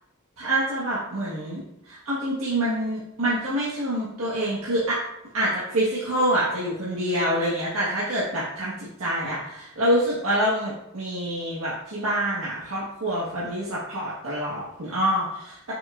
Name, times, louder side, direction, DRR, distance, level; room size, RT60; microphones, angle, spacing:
voice 1, 0.4-1.6 1.9-5.0 5.3-15.7, right 1 dB, 90° right, -8 dB, 1.5 m, -26 dB
6.7 x 5.7 x 2.5 m, 0.80 s
head